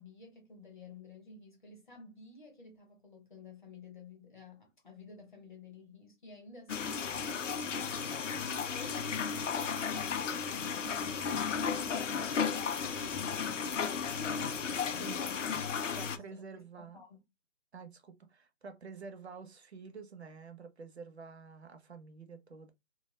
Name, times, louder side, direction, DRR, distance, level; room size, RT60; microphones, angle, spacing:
voice 1, 0.0-8.1 8.4-9.3 9.6-17.2, left 4 dB, 35° left, 0.9 m, -53 dB
sound 1, 6.7-16.2, left 6 dB, 65° left, 0.5 m, -34 dB
voice 2, 15.9-17.0 17.7-22.7, right 5 dB, 55° right, 0.6 m, -48 dB
2.3 x 2.2 x 3.1 m
hypercardioid pair, 175°, 40 cm